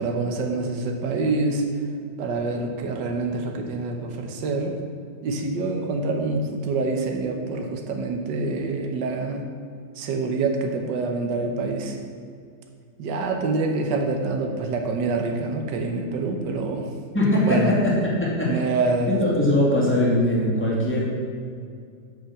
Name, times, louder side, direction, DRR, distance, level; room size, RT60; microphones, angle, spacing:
voice 1, 0.0-1.6 2.2-4.8 5.2-9.5 10.0-12.0 13.0-16.9 17.4-17.7 18.5-19.2, right 3 dB, 75° right, 3 dB, 1.7 m, -26 dB
voice 2, 17.1-18.6 19.1-21.0, left 1 dB, 5° left, -6 dB, 2.4 m, -21 dB
8.7 x 5.6 x 7.1 m, 2.3 s
omnidirectional pair, 1.9 m